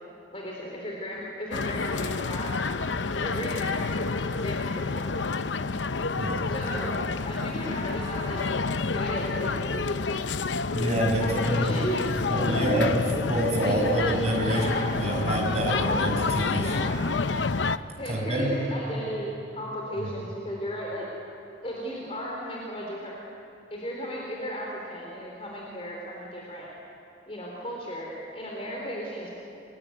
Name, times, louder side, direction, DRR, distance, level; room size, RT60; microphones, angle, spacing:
voice 1, 0.3-2.6 3.1-5.2 6.5-8.4 8.8-9.9 11.2-12.9 13.6-14.2 14.5-15.1 15.6-16.0 16.6-17.0 18.0-21.1 21.6-23.1 23.7-26.7 27.3-29.4, equal, 30° left, -2 dB, 3.8 m, -35 dB
sound 1, 1.5-17.8, left 4 dB, 90° left, 0.8 m, -29 dB
voice 2, 10.7-11.7 12.3-13.0 13.3-16.8 18.0-18.6 20.0-20.1, right 1 dB, 35° right, -1 dB, 5.8 m, -27 dB
28.5 x 21.5 x 9.5 m, 2.8 s
head